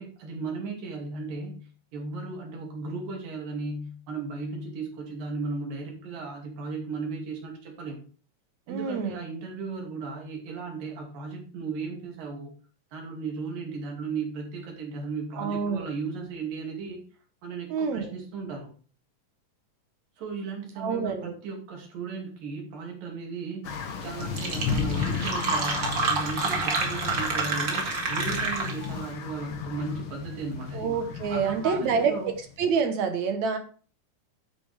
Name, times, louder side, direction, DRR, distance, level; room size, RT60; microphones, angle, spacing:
voice 1, 0.0-1.6 1.9-8.0 8.7-12.5 12.9-17.0 17.4-18.7 20.2-23.7 24.0-30.9 31.3-32.3, right 4 dB, 80° right, 0 dB, 4.2 m, -36 dB
voice 2, 8.7-9.2 15.4-15.9 17.7-18.1 20.8-21.3 30.7-32.3 32.6-33.6, right 6 dB, 65° right, 7 dB, 2.2 m, -27 dB
sound 1, 23.6-32.7, left 6 dB, 85° left, 1.1 m, -34 dB
Fill (with liquid), 23.9-24.0 24.2-29.0, right 4 dB, 40° right, 2.0 m, -28 dB
9.0 x 8.7 x 3.4 m, 0.41 s
omnidirectional pair, 3.8 m